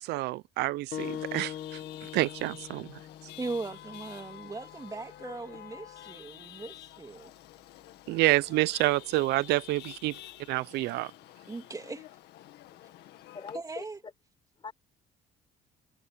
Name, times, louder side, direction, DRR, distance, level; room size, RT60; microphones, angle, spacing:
voice 1, 0.0-2.9 8.1-10.2 10.5-11.1, right 19 dB, 85° right, 0.6 m, -28 dB
sound 1, 0.9-6.0, left 10 dB, 60° left, 1.9 m, -43 dB
Chatter / Vehicle horn car horn honking / Traffic noise roadway noise, 1.0-13.6, left 14 dB, 80° left, 1.9 m, -49 dB
voice 2, 3.4-7.3 11.5-12.1 13.5-14.0, right 3 dB, 20° right, 2.9 m, -39 dB
voice 3, 12.7-14.1 14.6-14.7, left 5 dB, 30° left, 5.7 m, -45 dB
cardioid pair, 110°, 17 cm